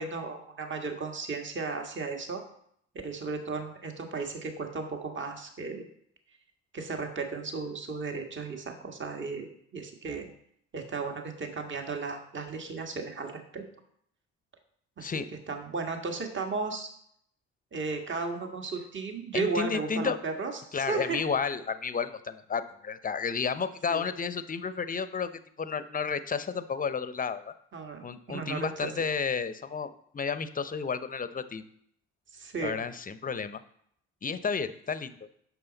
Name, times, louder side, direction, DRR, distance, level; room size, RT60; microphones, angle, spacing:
voice 1, 0.0-2.4 3.0-5.8 6.7-10.3 10.7-13.6 15.0-15.1 15.5-16.9 17.7-21.3 23.9-24.0 27.7-28.9 32.3-32.8, right 4 dB, 35° right, 4 dB, 1.6 m, -35 dB
voice 2, 19.3-20.2 20.7-27.5 28.0-31.6 32.6-33.6 34.2-35.1, left 6 dB, 25° left, 13 dB, 0.8 m, -32 dB
8.8 x 6.2 x 4.0 m, 0.68 s
hypercardioid pair, 55°, 35 cm